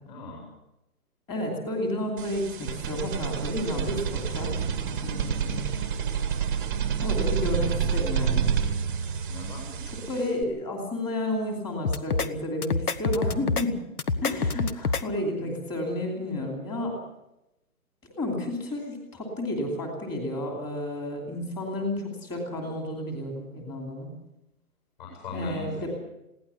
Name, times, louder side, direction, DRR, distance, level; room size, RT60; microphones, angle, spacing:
voice 1, 0.0-0.5 9.3-9.8 25.0-25.9, left 2 dB, 30° left, -2 dB, 7.3 m, -38 dB
voice 2, 1.3-4.5 5.0-5.6 7.0-8.5 10.1-13.7 14.2-17.0 18.1-24.1 25.3-25.9, left 1 dB, 10° left, 1 dB, 2.8 m, -31 dB
sound 1, 2.2-10.4, right 7 dB, 15° right, 1.3 m, -28 dB
sound 2, 11.8-12.3 12.6-13.6 14.0-15.0, left 4 dB, 80° left, 1.6 m, -26 dB
21.5 x 17.0 x 7.1 m, 0.89 s
hypercardioid pair, 170°, 45 cm